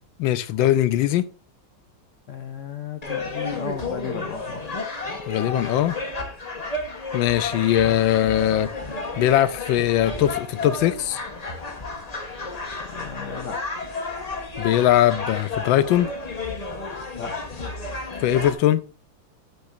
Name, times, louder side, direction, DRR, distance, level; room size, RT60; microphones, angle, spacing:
voice 1, 0.2-1.3 5.3-6.0 7.1-8.7 9.2-11.2 14.6-16.1 18.2-18.8, left 12 dB, 80° left, 1.3 m, -20 dB
voice 2, 2.3-4.6 12.9-13.6 17.2-17.3, left 6 dB, 60° left, 0.8 m, -34 dB
sound 1, 3.0-18.5, left 3 dB, 25° left, 0.9 m, -32 dB
8.4 x 8.0 x 2.6 m
omnidirectional pair, 2.1 m